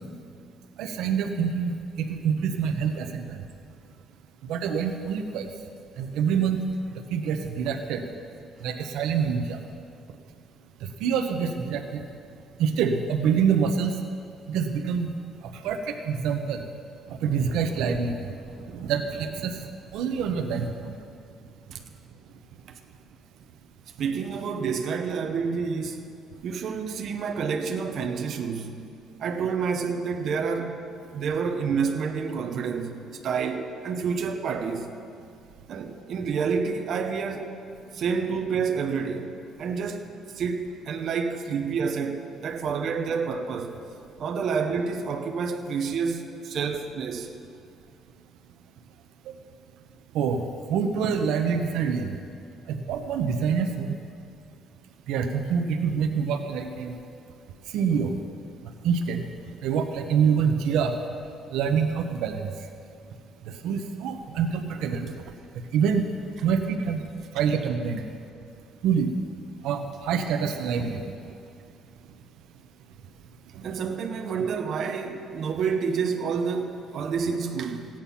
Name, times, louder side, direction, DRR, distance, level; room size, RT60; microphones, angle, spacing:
voice 1, 0.8-1.7 2.0-3.2 4.5-5.5 6.0-6.6 7.1-8.0 8.6-9.6 11.0-12.0 12.6-14.0 14.5-15.1 15.6-15.8 16.1-16.6 17.2-18.1 18.7-19.5 19.9-20.9 50.1-50.4 50.7-52.1 52.9-53.9 55.1-56.9 57.7-58.1 58.8-59.2 59.6-60.9 61.5-62.5 63.6-65.1 65.7-66.0 66.4-67.0 67.3-68.0 68.8-69.1 69.6-71.0, right 6 dB, 85° right, 5 dB, 0.9 m, -25 dB
voice 2, 24.0-26.1 26.4-28.8 29.2-30.8 31.1-33.0 33.2-34.9 35.7-37.5 37.9-39.3 39.6-43.8 44.2-47.3 64.3-64.4 73.6-77.9, right 5 dB, 50° right, 4 dB, 1.0 m, -29 dB
16.0 x 8.9 x 5.8 m, 2.5 s
cardioid pair, 155°, 0 cm